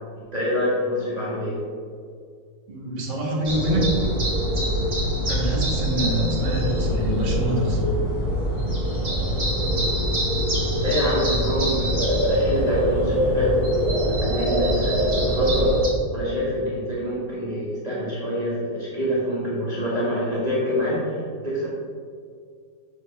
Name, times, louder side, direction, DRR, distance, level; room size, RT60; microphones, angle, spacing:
voice 1, 0.3-1.6 10.8-13.6 14.0-15.8 16.1-21.7, equal, 25° right, -9 dB, 1.8 m, -26 dB
voice 2, 2.7-3.8 5.3-7.8, equal, 75° right, -1 dB, 2.0 m, -26 dB
sound 1, 3.5-15.9, equal, 50° right, 2.3 m, -23 dB
7.7 x 6.7 x 3.4 m, 2.1 s
omnidirectional pair, 1.9 m